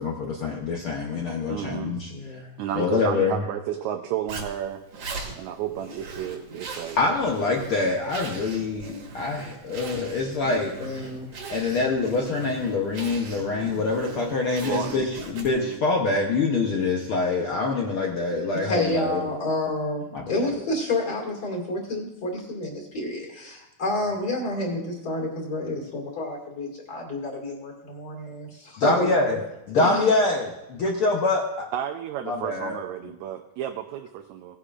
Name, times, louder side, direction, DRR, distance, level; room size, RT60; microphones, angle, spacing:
voice 1, 0.0-2.4 2.8-3.4 6.9-11.1 11.5-19.3 20.1-20.6 28.8-29.4 29.7-31.7 32.3-32.8, left 3 dB, 70° left, 1.3 m, -25 dB
voice 2, 1.5-2.0 2.6-4.8 5.4-7.0 14.6-15.1 15.5-15.8 31.7-34.6, right 10 dB, 75° right, 1.8 m, -32 dB
voice 3, 2.1-2.6 10.8-11.3 18.5-29.1 29.7-30.1, left 2 dB, 35° left, 2.5 m, -29 dB
Zipper (clothing), 4.3-15.8, right 3 dB, 55° right, 2.4 m, -39 dB
17.5 x 9.9 x 2.5 m
omnidirectional pair, 3.6 m